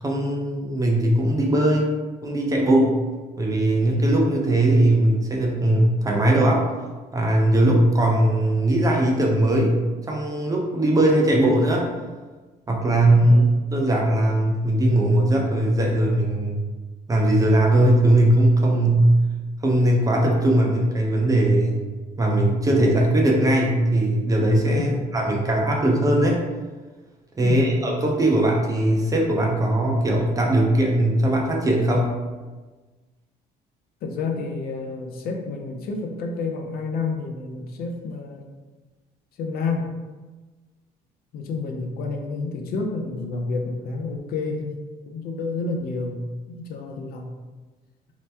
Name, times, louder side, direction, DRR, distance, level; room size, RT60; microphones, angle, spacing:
voice 1, 0.0-1.9 2.2-2.9 3.4-6.7 7.1-9.8 10.1-11.9 12.7-13.4 13.7-16.6 17.1-19.0 19.6-21.8 22.2-26.4 27.4-32.1, right 1 dB, 20° right, -1 dB, 0.5 m, -19 dB
voice 2, 13.1-13.5 18.8-19.1 24.7-25.4 27.4-27.8 34.0-38.5 39.4-39.9 41.3-46.2 46.5-47.3, left 3 dB, 65° left, 2 dB, 0.5 m, -30 dB
2.8 x 2.1 x 3.3 m, 1.3 s
cardioid pair, 110°, 17 cm